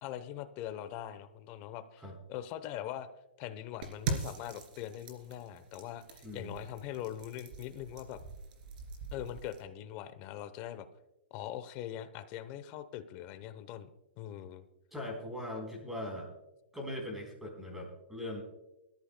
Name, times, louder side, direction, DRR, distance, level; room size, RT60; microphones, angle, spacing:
voice 1, 0.0-2.0 2.3-3.1 3.4-8.2 9.1-10.9 11.3-13.9 14.2-14.6, left 11 dB, 30° left, 12 dB, 0.8 m, -42 dB
sound 1, 3.8-9.6, right 4 dB, 50° right, 2.9 m, -42 dB
voice 2, 6.2-6.6 14.9-16.3 16.7-18.4, left 1 dB, 5° right, 0 dB, 3.9 m, -40 dB
23.0 x 13.5 x 2.2 m, 0.93 s
hypercardioid pair, 155°, 6 cm